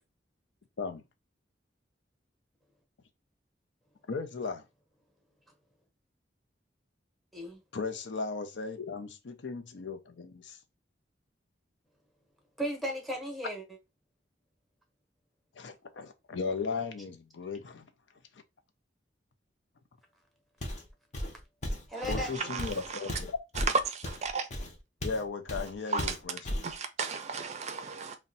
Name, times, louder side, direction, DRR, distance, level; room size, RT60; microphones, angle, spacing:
voice 1, 4.1-4.6 7.7-10.6 15.6-17.9 22.1-23.3 25.0-26.4, left 4 dB, 75° left, 0.5 m, -36 dB
voice 2, 12.6-13.6 21.9-22.6, equal, ahead, 0.8 m, -36 dB
Walk footsteps, 20.6-20.9 21.1-25.2 25.5-25.7 26.0-26.7, left 1 dB, 40° left, 0.7 m, -35 dB
voice 3, 21.9-23.2 23.6-24.5 25.9-26.2 26.6-28.2, right 4 dB, 40° right, 0.4 m, -34 dB
2.6 x 2.2 x 3.9 m
head